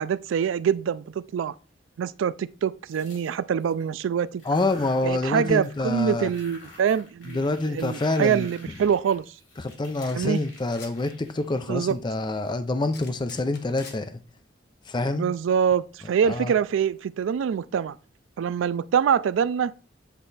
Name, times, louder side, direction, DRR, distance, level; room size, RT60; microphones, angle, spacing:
voice 1, 0.0-1.5 2.0-4.4 5.0-9.3 10.2-10.4 11.7-12.0 15.1-18.0 18.4-19.7, right 7 dB, 90° right, 0.3 m, -25 dB
sound 1, 2.9-3.9 4.3-5.9 6.1-12.5, left 2 dB, 85° left, 2.5 m, -50 dB
voice 2, 4.4-6.3 7.3-8.5 9.6-14.2 14.9-15.2 16.2-16.5, left 2 dB, 25° left, 0.4 m, -27 dB
sound 2, 9.7-9.8 10.0-10.3 10.6-10.9 12.9-14.0, left 5 dB, 60° left, 1.2 m, -45 dB
8.1 x 3.3 x 4.0 m
head